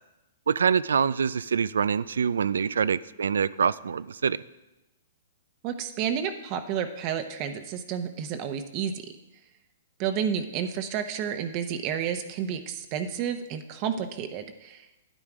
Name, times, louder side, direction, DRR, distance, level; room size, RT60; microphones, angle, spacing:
voice 1, 0.5-4.4, right 6 dB, 85° right, 18 dB, 0.4 m, -25 dB
voice 2, 5.6-8.9 10.0-15.0, right 8 dB, 40° right, 7 dB, 0.9 m, -31 dB
10.5 x 9.0 x 4.9 m, 1.0 s
hypercardioid pair, 135°, 0 cm